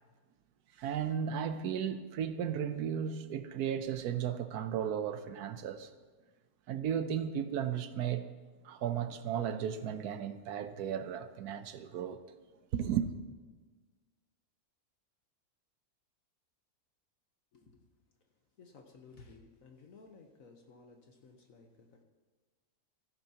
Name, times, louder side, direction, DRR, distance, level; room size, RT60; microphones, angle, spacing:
voice 1, 0.8-5.9 6.7-8.3 8.6-12.2 12.7-13.1, right 8 dB, 80° right, 1.2 m, -35 dB
voice 2, 17.5-17.8 18.6-22.0, left 4 dB, 60° left, 1.4 m, -56 dB
16.0 x 14.0 x 2.9 m
omnidirectional pair, 1.6 m